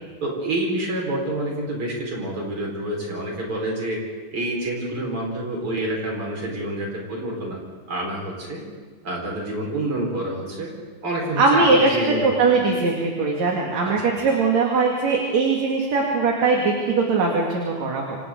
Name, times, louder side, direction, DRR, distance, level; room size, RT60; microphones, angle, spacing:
voice 1, 0.2-4.0 4.3-7.6 7.9-8.6 9.0-10.7 11.0-12.6 13.8-14.2, right 1 dB, 40° right, -2 dB, 5.7 m, -28 dB
voice 2, 11.4-12.0 12.2-18.2, right 3 dB, 60° right, -1 dB, 3.5 m, -20 dB
29.0 x 26.0 x 3.9 m, 1.5 s
omnidirectional pair, 3.6 m